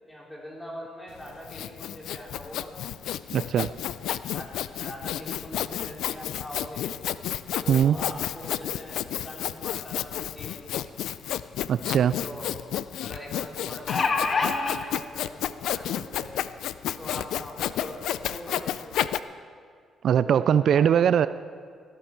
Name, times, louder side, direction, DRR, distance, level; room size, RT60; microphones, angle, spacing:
voice 1, 0.0-2.7 4.3-6.9 7.6-10.8 12.2-12.5 13.0-16.3 17.0-19.2 20.2-21.1, equal, 10° left, -4 dB, 4.4 m, -42 dB
Sawing, 1.2-19.2, left 11 dB, 80° left, 0.4 m, -31 dB
voice 2, 3.3-3.7 7.7-8.0 11.7-12.2 20.0-21.3, right 8 dB, 65° right, 15 dB, 0.3 m, -21 dB
sound 1, 11.5-11.6 11.9-12.0 13.6-14.8 15.7-15.8 16.2-16.3, left 4 dB, 45° left, 1.2 m, -25 dB
14.5 x 13.0 x 4.5 m, 2.2 s
cardioid pair, 75°, 0 cm